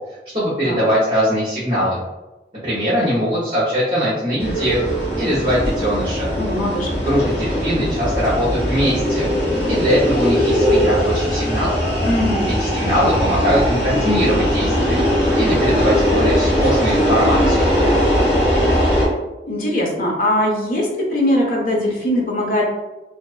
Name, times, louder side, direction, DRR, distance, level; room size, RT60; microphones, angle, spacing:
voice 1, 0.3-2.0 2.6-4.8 5.2-6.3 7.0-9.3 9.7-11.8 12.6-15.0 15.4-17.7, equal, 30° right, -9 dB, 0.7 m, -21 dB
sound 1, 4.4-19.1, equal, 15° left, 1.3 m, -19 dB
voice 2, 6.4-7.0 12.0-12.5 19.4-22.6, left 1 dB, 50° left, -1 dB, 0.6 m, -20 dB
2.6 x 2.3 x 2.3 m, 1.0 s
head